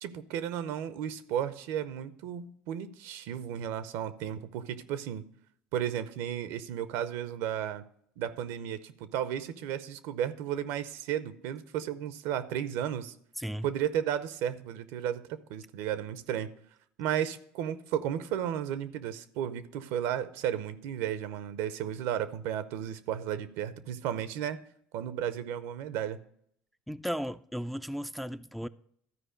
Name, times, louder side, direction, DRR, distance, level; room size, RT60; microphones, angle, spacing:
voice 1, 0.0-5.2 5.7-7.8 8.2-13.1 13.6-16.5 17.0-24.6 24.9-26.2, right 10 dB, 75° right, 0.7 m, -34 dB
voice 2, 13.4-13.7 26.9-28.7, equal, ahead, 0.3 m, -35 dB
13.0 x 4.8 x 5.1 m
supercardioid pair, 95°, 4 cm